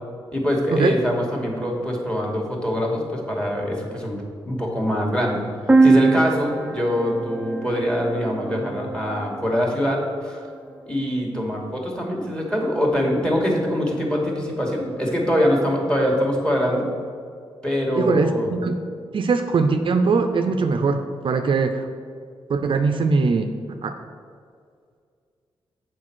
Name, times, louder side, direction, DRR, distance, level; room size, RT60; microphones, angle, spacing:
voice 1, 0.3-5.4 5.8-10.5 10.9-16.9 17.6-18.5, equal, 10° left, 0 dB, 2.1 m, -23 dB
sound 1, 5.7-9.4, right 3 dB, 15° right, 0.5 m, -22 dB
voice 2, 17.9-18.7 19.1-21.9 22.5-24.0, right 4 dB, 55° right, 7 dB, 0.5 m, -21 dB
7.3 x 4.6 x 6.2 m, 2.2 s
cardioid pair, 60°, 10 cm